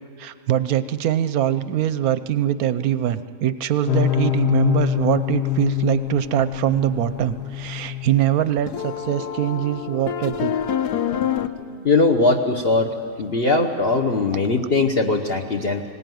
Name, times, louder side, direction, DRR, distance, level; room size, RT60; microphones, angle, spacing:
voice 1, 0.2-10.5, right 11 dB, 65° right, 13 dB, 1.0 m, -23 dB
sound 1, 3.9-11.5, left 12 dB, 75° left, 1.3 m, -25 dB
voice 2, 11.6-15.8, left 3 dB, 40° left, 1 dB, 1.1 m, -20 dB
20.0 x 18.0 x 9.3 m, 2.5 s
omnidirectional pair, 1.8 m